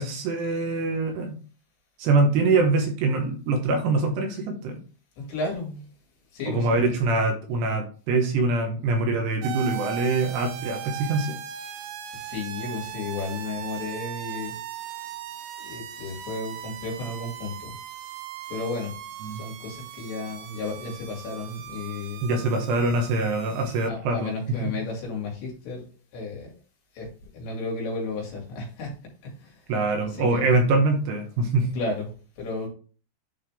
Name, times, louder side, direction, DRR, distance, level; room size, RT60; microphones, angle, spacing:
voice 1, 0.0-1.4 2.0-4.8 6.5-11.4 19.2-19.4 22.2-24.7 29.7-31.7, right 3 dB, 70° right, 4 dB, 3.0 m, -24 dB
voice 2, 5.2-5.8 6.3-6.9 12.2-14.5 15.6-17.7 18.5-18.9 19.4-22.3 23.5-23.6 23.9-25.8 26.1-26.5 27.0-27.1 27.3-28.9 29.2-29.5 30.2-30.4 31.7-32.1 32.4-32.7, left 3 dB, 70° left, -1 dB, 4.5 m, -33 dB
sound 1, 9.4-23.9, right 11 dB, 90° right, 3.2 m, -38 dB
11.0 x 4.1 x 3.4 m, 0.38 s
omnidirectional pair, 5.3 m